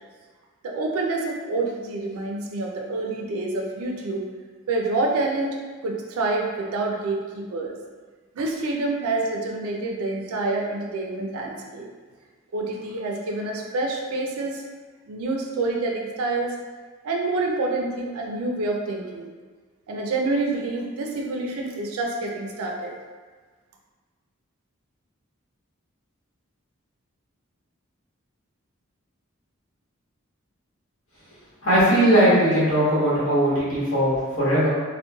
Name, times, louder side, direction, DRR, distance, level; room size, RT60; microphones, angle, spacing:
voice 1, 0.6-4.3 4.7-7.8 8.3-11.9 12.5-14.6 15.1-16.5 17.0-19.3 19.9-22.9, right 2 dB, 80° right, 0 dB, 0.4 m, -27 dB
voice 2, 31.6-34.7, equal, 70° left, -9 dB, 1.1 m, -19 dB
2.9 x 2.1 x 2.2 m, 1.4 s
head